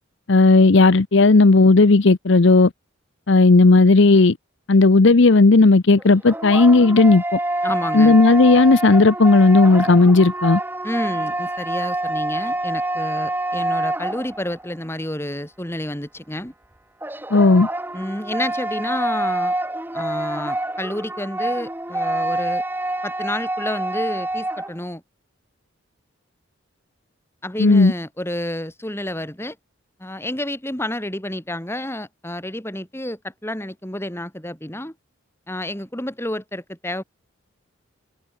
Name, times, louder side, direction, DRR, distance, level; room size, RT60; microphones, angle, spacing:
voice 1, 0.3-2.7 3.3-4.3 4.7-7.2 7.9-10.6 17.3-17.7 27.6-27.9, left 3 dB, 60° left, 0.7 m, -13 dB
sound 1, 6.0-14.7 17.0-24.8, right 1 dB, 10° right, 1.8 m, -26 dB
voice 2, 7.6-8.2 10.8-16.5 17.9-19.5 19.9-22.6 23.0-25.0 27.4-29.6 30.0-34.9 35.5-37.0, left 1 dB, 10° left, 2.5 m, -29 dB
head